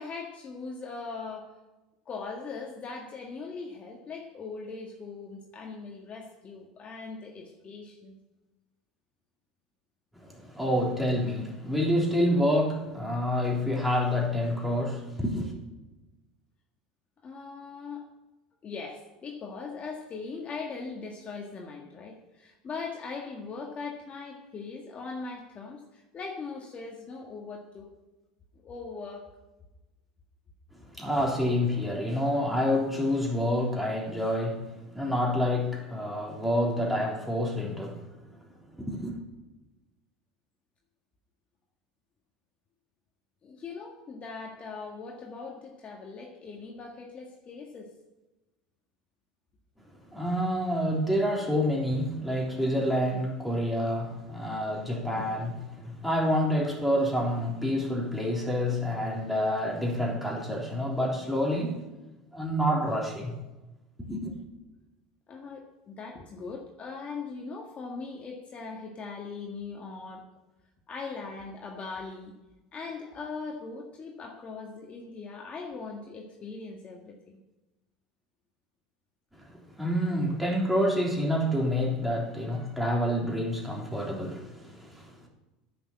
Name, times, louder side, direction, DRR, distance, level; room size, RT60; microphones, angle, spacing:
voice 1, 0.0-1.6 2.1-8.1 17.2-18.1 18.6-27.9 28.6-29.3 43.4-47.9 65.3-70.3 70.9-72.3 72.7-77.2, left 4 dB, 35° left, 1.7 m, -40 dB
voice 2, 10.2-15.5 30.9-38.2 38.8-39.2 50.1-61.8 62.3-63.3 64.1-64.4 79.4-85.3, equal, 5° right, 3.4 m, -28 dB
10.0 x 6.9 x 8.5 m
hypercardioid pair, 85°, 4 cm